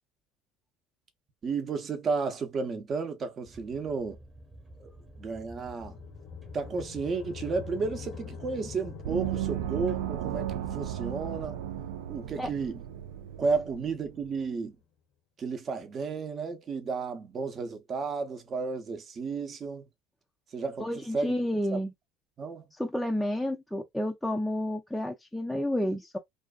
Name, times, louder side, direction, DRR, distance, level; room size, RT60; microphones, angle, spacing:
voice 1, 1.4-4.2 4.8-6.0 6.5-11.6 12.1-12.8 13.4-14.8 15.4-19.8 20.5-20.9 21.1-21.3 21.7-21.8 22.4-22.7, right 4 dB, 40° right, 0.7 m, -33 dB
sound 1, 3.5-10.9, right 2 dB, 20° right, 1.1 m, -51 dB
sound 2, 4.3-14.6, left 7 dB, 70° left, 0.7 m, -47 dB
Gong, 9.0-14.3, right 12 dB, 85° right, 0.4 m, -35 dB
voice 2, 20.8-21.9 22.7-26.2, left 1 dB, 5° left, 0.4 m, -30 dB
2.5 x 2.3 x 2.3 m
supercardioid pair, 85°, 0 cm